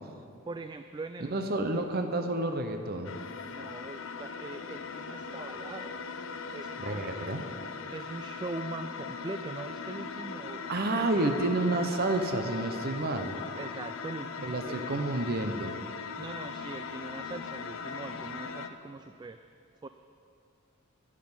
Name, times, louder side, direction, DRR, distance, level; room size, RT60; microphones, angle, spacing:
voice 1, 0.5-1.9 3.4-6.2 6.5-7.3 7.9-10.6 11.1-11.2 13.5-14.9 16.2-19.4 19.8-19.9, right 3 dB, 20° right, 8 dB, 0.3 m, -42 dB
voice 2, 1.3-3.1 6.8-7.4 10.7-13.3 14.4-15.7, right 2 dB, 45° right, 6 dB, 0.8 m, -30 dB
sound 1, 3.0-18.7, left 5 dB, 65° left, 0.6 m, -39 dB
11.0 x 7.5 x 9.6 m, 2.5 s
head